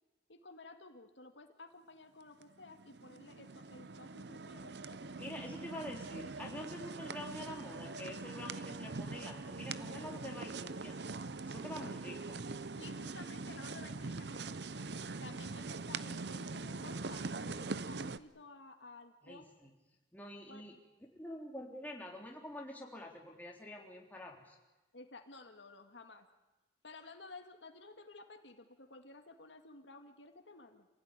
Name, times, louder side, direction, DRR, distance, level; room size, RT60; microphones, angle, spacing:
voice 1, 0.3-5.6 12.8-14.9 15.2-19.4 20.5-20.6 24.9-26.3 26.8-30.9, left 3 dB, 75° left, 6 dB, 2.1 m, -54 dB
sound 1, 2.4-18.2, right 3 dB, 65° right, 0.8 m, -43 dB
voice 2, 5.2-11.0 11.4-12.4 19.2-19.7 20.1-20.8 21.1-24.6, left 1 dB, 10° left, -1 dB, 3.4 m, -47 dB
27.5 x 16.0 x 9.9 m, 1.1 s
head